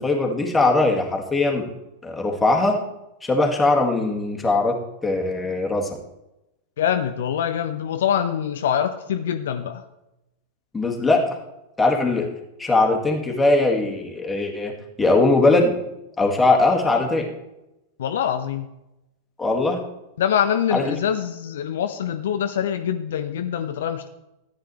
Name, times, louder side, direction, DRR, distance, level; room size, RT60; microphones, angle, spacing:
voice 1, 0.0-1.7 2.0-2.8 3.2-4.8 5.0-5.9 10.7-11.2 11.8-12.3 12.6-14.7 15.0-15.7 16.2-17.3 19.4-19.8 20.7-21.0, left 2 dB, 10° left, 0 dB, 2.1 m, -20 dB
voice 2, 6.8-9.8 18.0-18.7 20.2-24.1, left 9 dB, 60° left, 8 dB, 0.6 m, -24 dB
14.5 x 9.4 x 3.3 m, 0.91 s
figure-of-eight pair, 90°, 0 cm